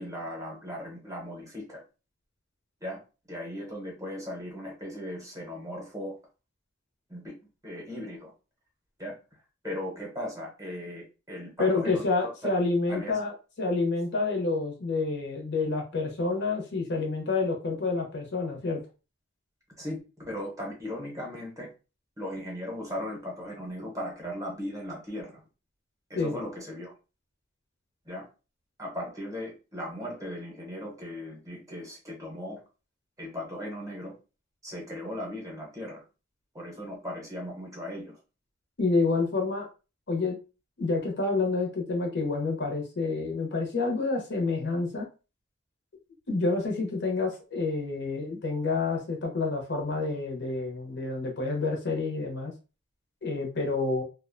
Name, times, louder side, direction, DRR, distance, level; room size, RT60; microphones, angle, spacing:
voice 1, 0.0-1.8 2.8-3.0 3.3-6.2 7.1-7.3 7.6-8.3 9.0-9.2 9.6-12.5 12.9-13.2 19.8-20.0 20.3-21.7 22.2-25.4 26.1-26.9 28.0-28.3 28.8-32.6 33.2-34.1 34.6-36.0 36.5-38.2, left 1 dB, 15° right, -2 dB, 0.8 m, -37 dB
voice 2, 11.6-18.8 26.2-26.4 38.8-39.7 40.1-40.4 40.8-45.1 46.3-52.5 53.2-54.0, left 3 dB, 55° left, 2 dB, 0.7 m, -28 dB
2.5 x 2.1 x 2.5 m, 0.32 s
head